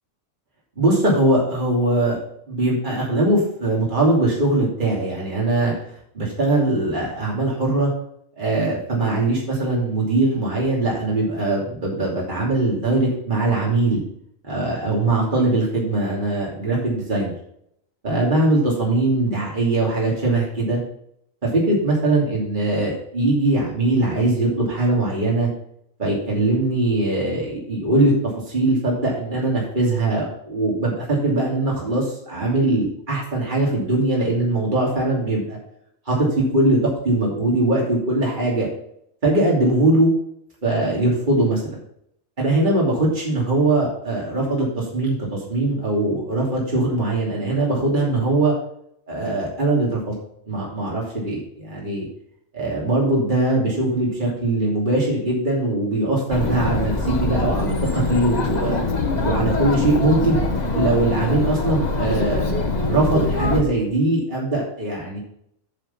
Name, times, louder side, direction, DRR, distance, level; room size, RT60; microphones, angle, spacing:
voice 1, 0.8-2.2 2.5-5.7 6.1-7.9 8.4-14.0 14.4-17.3 18.0-20.8 21.5-25.5 26.0-28.1 28.5-35.6 36.1-36.8 37.0-38.7 39.2-40.1 40.6-41.8 42.4-45.2 45.5-48.5 49.1-50.1 50.5-52.1 52.5-58.8 59.2-60.4 60.7-62.5 62.8-65.2, right 2 dB, 35° right, -4 dB, 2.9 m, -21 dB
Chatter, 56.3-63.6, left 3 dB, 35° left, 1.3 m, -23 dB
7.9 x 7.0 x 5.6 m, 0.72 s
omnidirectional pair, 1.4 m